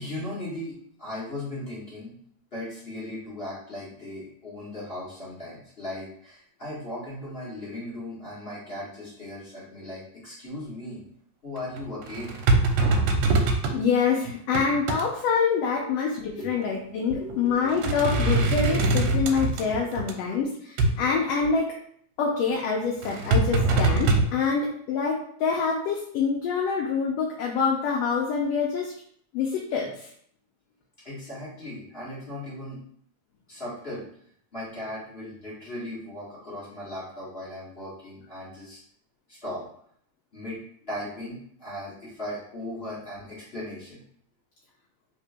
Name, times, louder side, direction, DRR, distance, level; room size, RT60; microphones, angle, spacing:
voice 1, 0.0-2.1 2.5-11.0 11.4-12.4 15.8-15.9 16.4-16.6 17.2-17.9 19.8-19.9 20.8-21.1 31.0-32.8 33.5-34.0 34.5-38.8 39.3-39.6 40.3-44.0, left 1 dB, 30° left, -9 dB, 1.1 m, -37 dB
sound 1, 11.6-13.8 14.2-15.1 16.5-16.6 17.1-17.3 17.7-20.1 20.8-21.0 23.0-24.2, right 2 dB, 80° right, 1.8 m, -23 dB
voice 2, 13.7-20.5 21.0-21.7 22.2-28.9 29.3-29.9, left 5 dB, 75° left, -1 dB, 1.5 m, -26 dB
3.8 x 3.6 x 3.4 m, 0.65 s
omnidirectional pair, 3.3 m